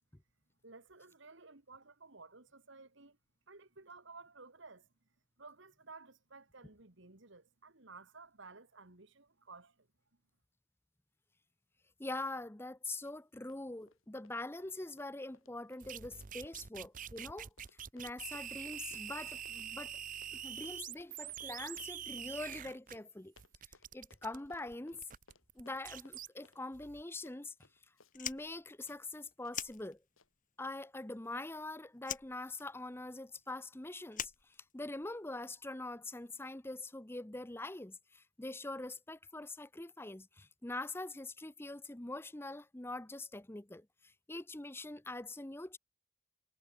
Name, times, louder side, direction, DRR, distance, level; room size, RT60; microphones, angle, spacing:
voice 1, 0.6-3.2 3.5-4.9 5.4-9.9, right 3 dB, 60° right, 2.0 m, -55 dB
voice 2, 12.0-17.5 17.9-19.9 20.3-23.3 23.9-25.1 25.6-27.5 28.1-30.0 30.6-45.8, left 2 dB, 10° left, 0.7 m, -44 dB
Run, 13.0-13.2 13.5-28.6 28.9-29.0 29.4-29.6 30.2-30.3, left 3 dB, 75° left, 5.2 m, -66 dB
sound 1, 15.8-23.0 23.4-26.3 26.7-27.0, right 9 dB, 40° right, 0.7 m, -45 dB
Fire, 28.1-30.4 30.7-31.7 32.0-35.2, left 10 dB, 40° left, 2.2 m, -44 dB
head